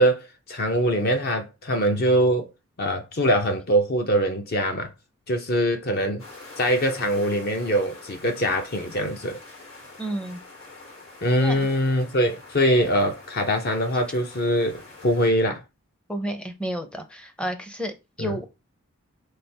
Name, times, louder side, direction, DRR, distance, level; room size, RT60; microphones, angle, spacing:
voice 1, 0.0-2.5 2.8-4.9 5.3-6.2 6.6-9.4 11.2-15.6 18.2-18.4, equal, 45° left, 0.6 m, -23 dB
sound 1, 6.2-15.3, left 3 dB, 70° left, 2.1 m, -45 dB
voice 2, 10.0-10.4 11.4-11.7 16.1-18.5, right 1 dB, 5° left, 0.5 m, -31 dB
3.6 x 3.4 x 4.3 m
head